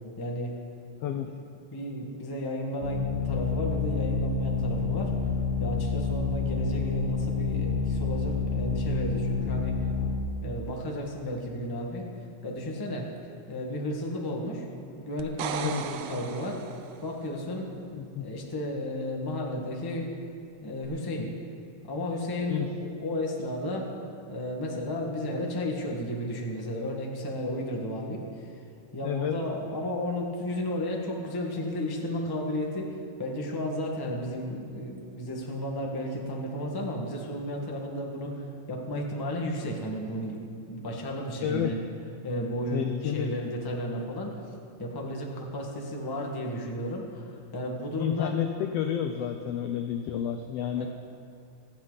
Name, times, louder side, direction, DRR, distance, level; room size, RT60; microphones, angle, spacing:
voice 1, 0.2-0.5 1.7-5.1 5.6-9.8 10.4-12.1 12.4-13.1 13.5-14.6 14.9-16.6 17.0-17.7 18.2-20.1 20.6-21.3 21.8-23.9 24.3-28.5 28.9-40.4 40.7-41.8 42.2-44.4 44.8-48.3 50.8-50.9, left 1 dB, 20° left, -1 dB, 0.5 m, -33 dB
sound 1, 2.8-10.2, left 4 dB, 60° left, 2.8 m, -28 dB
sound 2, 15.2-17.1 20.8-20.9, right 9 dB, 75° right, 1.6 m, -36 dB
voice 2, 17.9-18.3 22.5-22.7 29.0-29.4 41.4-41.8 42.7-43.3 48.0-50.9, left 10 dB, 90° left, 6 dB, 1.3 m, -30 dB
25.5 x 8.7 x 4.0 m, 2.5 s
omnidirectional pair, 3.5 m